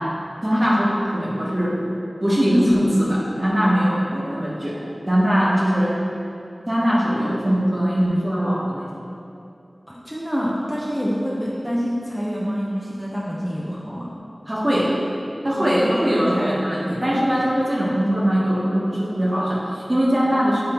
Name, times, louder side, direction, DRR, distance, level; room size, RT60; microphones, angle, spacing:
voice 1, 0.4-1.8 2.2-6.0 6.7-9.0 14.5-14.9 15.4-20.6, equal, 35° right, -5 dB, 1.5 m, -21 dB
voice 2, 9.9-14.1 15.6-15.7, equal, ahead, -6 dB, 0.9 m, -26 dB
8.8 x 3.6 x 4.5 m, 2.6 s
wide cardioid pair, 45°, 0 cm